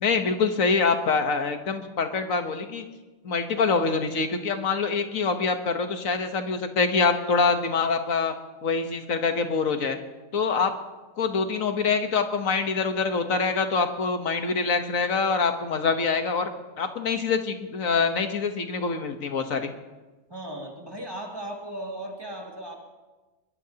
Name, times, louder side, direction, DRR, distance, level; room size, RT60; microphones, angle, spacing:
voice 1, 0.0-2.8 3.2-8.3 8.6-10.0 10.3-10.7 11.2-16.5 16.8-19.7, left 4 dB, 80° left, 6 dB, 1.5 m, -25 dB
voice 2, 20.3-22.8, right 1 dB, 15° right, 0 dB, 2.3 m, -36 dB
22.0 x 20.5 x 2.9 m, 1.2 s
omnidirectional pair, 1.4 m